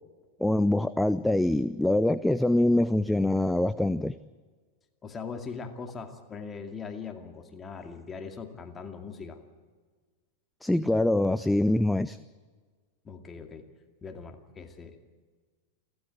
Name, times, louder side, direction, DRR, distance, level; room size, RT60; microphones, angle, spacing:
voice 1, 0.4-4.2 10.6-12.2, left 1 dB, 5° left, 14 dB, 0.5 m, -24 dB
voice 2, 5.0-9.4 13.0-13.7 14.0-15.0, left 5 dB, 20° left, 5 dB, 2.4 m, -40 dB
29.0 x 12.5 x 8.2 m, 1.5 s
figure-of-eight pair, 90°, 0 cm